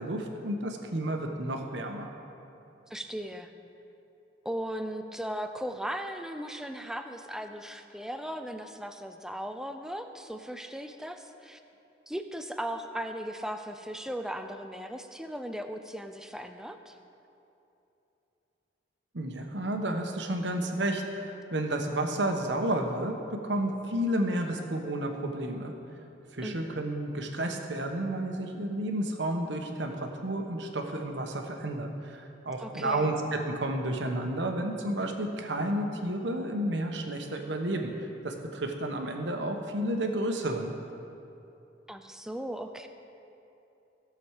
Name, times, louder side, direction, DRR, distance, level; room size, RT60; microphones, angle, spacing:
voice 1, 0.0-2.1 19.1-25.7 26.3-40.7, right 1 dB, 65° right, 3 dB, 1.1 m, -31 dB
voice 2, 2.9-3.5 4.4-11.6 12.1-17.0 26.4-26.8 32.6-33.1 41.9-42.9, equal, 5° right, 7 dB, 0.5 m, -37 dB
16.5 x 7.2 x 4.8 m, 2.9 s
head